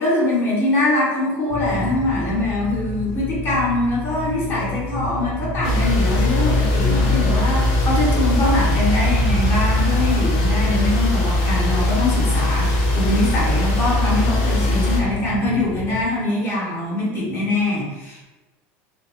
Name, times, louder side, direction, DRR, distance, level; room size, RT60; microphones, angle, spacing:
voice 1, 0.0-18.2, left 2 dB, 35° left, -5 dB, 1.0 m, -23 dB
sound 1, 1.5-16.0, left 1 dB, 85° left, 1.0 m, -28 dB
sound 2, 5.6-15.0, left 1 dB, 60° left, 0.7 m, -20 dB
2.9 x 2.1 x 2.8 m, 1.1 s
supercardioid pair, 140°, 7 cm